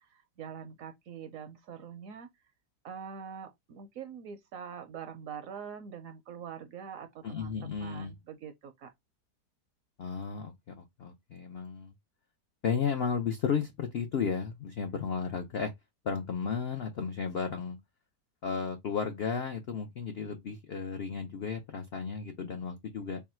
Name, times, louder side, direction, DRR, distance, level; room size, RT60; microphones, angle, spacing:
voice 1, 0.0-2.3 2.8-8.9, right 7 dB, 70° right, 0.8 m, -44 dB
voice 2, 7.2-8.1 10.0-11.9 12.6-15.7 16.0-17.8 18.4-23.2, left 6 dB, 90° left, 0.5 m, -34 dB
3.5 x 2.2 x 4.2 m
omnidirectional pair, 1.8 m